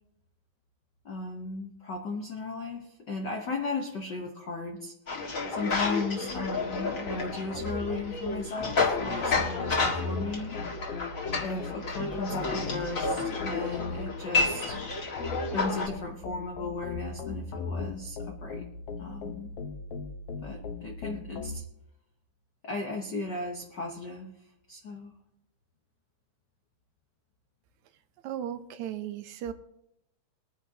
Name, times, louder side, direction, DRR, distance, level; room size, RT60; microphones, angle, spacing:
voice 1, 1.0-10.6 11.4-14.8 15.5-18.7 19.0-19.5 20.4-21.6 22.6-24.3 24.7-25.1, left 3 dB, 85° left, 2 dB, 0.9 m, -36 dB
sound 1, 5.1-15.9, left 3 dB, 35° left, 1.5 m, -31 dB
sound 2, 6.4-21.6, left 4 dB, 65° left, 1.6 m, -39 dB
voice 2, 28.2-29.5, right 10 dB, 75° right, 10 dB, 1.9 m, -36 dB
21.5 x 9.8 x 2.8 m, 0.82 s
omnidirectional pair, 3.6 m